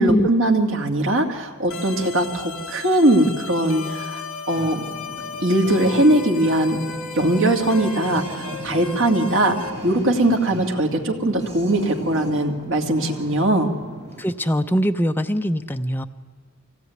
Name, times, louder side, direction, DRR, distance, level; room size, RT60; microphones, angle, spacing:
voice 1, 0.0-4.8 5.4-6.8 7.1-13.7, right 1 dB, 60° right, 3 dB, 2.6 m, -20 dB
sound 1, 1.7-9.7, left 4 dB, 65° left, 2.8 m, -35 dB
sound 2, 4.5-14.2, right 1 dB, 30° right, 7.0 m, -37 dB
voice 2, 14.2-16.1, equal, 10° left, 7 dB, 0.7 m, -22 dB
24.0 x 17.0 x 9.4 m, 1.5 s
head